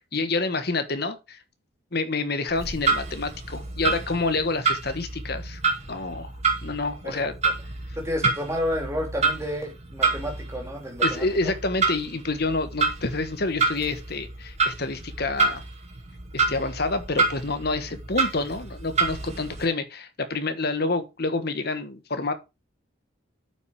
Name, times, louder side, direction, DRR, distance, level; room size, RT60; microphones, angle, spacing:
voice 1, 0.1-1.4 1.9-5.6 5.9-6.3 6.6-7.3 11.0-15.6 16.3-22.3, left 3 dB, 50° left, 1.2 m, -28 dB
Clock, 2.5-19.6, right 4 dB, 30° right, 2.3 m, -28 dB
voice 2, 7.9-11.5, left 1 dB, 15° right, 3.1 m, -31 dB
9.1 x 6.0 x 4.7 m
head